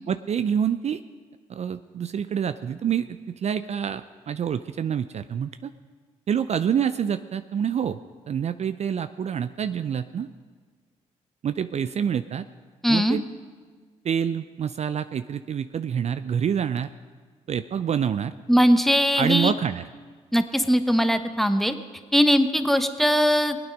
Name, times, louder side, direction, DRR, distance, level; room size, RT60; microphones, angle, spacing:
voice 1, 0.1-1.0 1.5-5.7 6.3-8.0 8.3-10.3 11.4-12.4 12.9-13.2 14.0-16.9 17.5-18.3 19.2-19.8, right 8 dB, 45° right, 12 dB, 0.5 m, -27 dB
voice 2, 12.8-13.2 18.5-19.5 20.3-21.8 22.1-23.6, equal, ahead, 8 dB, 1.1 m, -20 dB
20.0 x 9.0 x 5.3 m, 1.5 s
hypercardioid pair, 45°, 15 cm